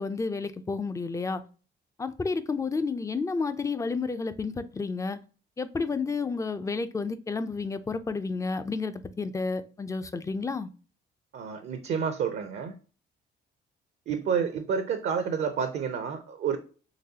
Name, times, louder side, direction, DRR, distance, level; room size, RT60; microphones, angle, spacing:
voice 1, 0.0-1.4 2.0-5.2 5.6-10.7, left 4 dB, 15° left, 0.4 m, -31 dB
voice 2, 11.3-12.8 14.1-16.6, right 7 dB, 60° right, 0.5 m, -29 dB
3.9 x 3.0 x 2.7 m
cardioid pair, 90°, 20 cm